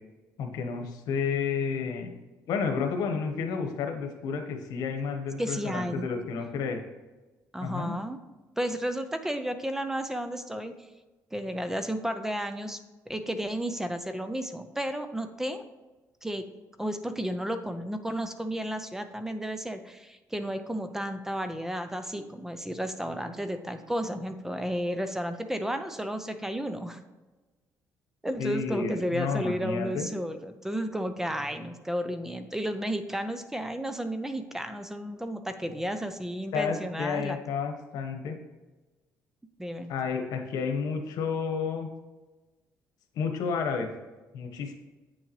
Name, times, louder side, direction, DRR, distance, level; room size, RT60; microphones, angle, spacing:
voice 1, 0.4-2.1 2.5-6.8 7.6-8.0 28.4-30.1 36.5-38.4 39.9-41.9 43.1-43.9 44.3-44.7, left 5 dB, 85° left, 5 dB, 1.2 m, -31 dB
voice 2, 5.4-6.1 7.5-8.2 8.6-10.7 11.3-12.8 13.1-15.6 16.2-16.5 16.8-27.0 28.2-37.4 39.6-39.9, equal, 5° right, 9 dB, 0.5 m, -32 dB
8.4 x 6.6 x 3.1 m, 1.2 s
cardioid pair, 140°, 6 cm